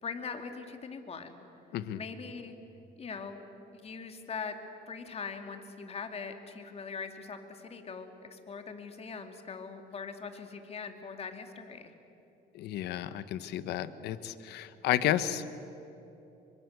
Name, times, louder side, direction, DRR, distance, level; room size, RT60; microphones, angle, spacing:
voice 1, 0.0-1.4 1.9-2.5 3.0-3.5 3.7-4.5 4.9-11.9, left 5 dB, 35° left, 6 dB, 2.7 m, -41 dB
voice 2, 12.5-15.4, left 12 dB, 80° left, 13 dB, 1.3 m, -32 dB
26.5 x 24.5 x 8.2 m, 2.9 s
cardioid pair, 110°, 17 cm